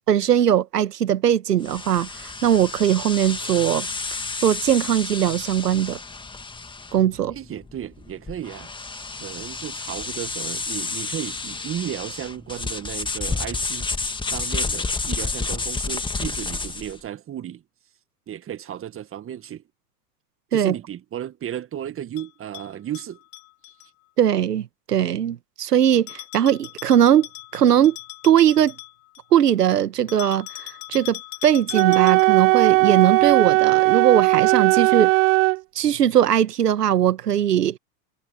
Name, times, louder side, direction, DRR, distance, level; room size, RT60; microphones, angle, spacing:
voice 1, 0.1-3.9 4.4-6.0 6.9-7.3 20.5-20.7 24.2-27.3 27.5-28.0 28.2-28.7 29.3-35.1 35.7-37.8, right 10 dB, 85° right, 1.8 m, -20 dB
sound 1, 1.6-17.0, left 3 dB, 10° left, 1.9 m, -30 dB
voice 2, 7.3-8.7 9.2-13.9 14.3-17.6 18.3-19.6 20.5-23.2, right 10 dB, 25° right, 1.8 m, -34 dB
Bell, 22.2-23.9 26.1-29.3 30.1-32.5, left 31 dB, 55° left, 4.4 m, -39 dB
Wind instrument woodwind instrument, 31.7-35.6, right 24 dB, 55° right, 0.8 m, -17 dB
hypercardioid pair, 100°, 47 cm